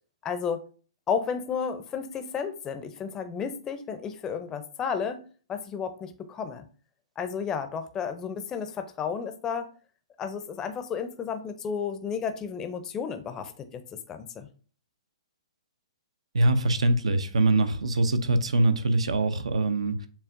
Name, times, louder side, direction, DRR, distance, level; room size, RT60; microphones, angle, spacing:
voice 1, 0.2-0.7 1.1-6.6 7.2-9.7 10.2-13.8 14.1-14.5, left 6 dB, 20° left, 8 dB, 0.5 m, -32 dB
voice 2, 16.3-20.1, right 2 dB, 85° right, 10 dB, 0.6 m, -23 dB
7.0 x 2.4 x 2.5 m, 0.39 s
hypercardioid pair, 140°, 3 cm